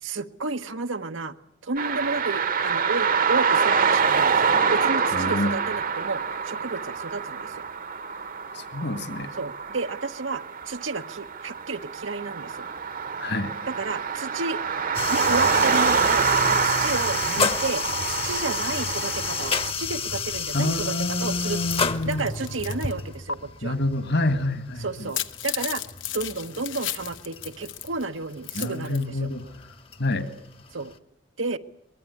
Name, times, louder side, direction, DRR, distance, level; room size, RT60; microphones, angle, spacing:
voice 1, 0.0-1.4 1.6-4.4 4.7-7.6 9.4-12.7 13.6-14.6 15.1-16.3 16.6-20.9 21.2-21.6 22.0-23.8 24.8-25.8 26.1-29.3 30.7-30.9 31.4-31.6, right 3 dB, 85° right, 7 dB, 1.1 m, -32 dB
sound 1, 1.8-19.7, right 6 dB, 45° right, 1.0 m, -26 dB
voice 2, 5.1-5.6 8.5-9.3 13.2-13.5 20.5-22.3 23.6-25.1 28.5-29.5 30.0-30.3, left 2 dB, 60° left, 9 dB, 2.0 m, -27 dB
sound 2, 14.9-31.0, left 5 dB, 30° left, 1.0 m, -32 dB
sound 3, 21.6-22.9 23.3-23.4 25.0-28.0 28.3-29.0, left 11 dB, 80° left, 1.1 m, -34 dB
23.0 x 21.0 x 9.7 m, 0.73 s
head